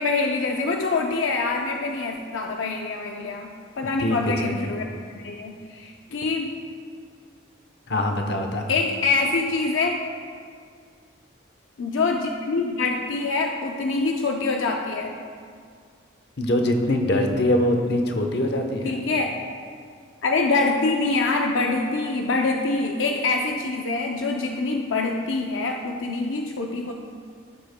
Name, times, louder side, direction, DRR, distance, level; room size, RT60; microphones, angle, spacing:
voice 1, 0.0-6.6 8.7-10.1 11.8-15.2 18.8-19.3 20.2-26.9, left 3 dB, 80° left, 2 dB, 0.5 m, -25 dB
voice 2, 4.0-4.6 7.9-8.7 16.4-18.9, left 1 dB, 55° left, 4 dB, 0.9 m, -23 dB
16.0 x 7.7 x 2.2 m, 2.2 s
head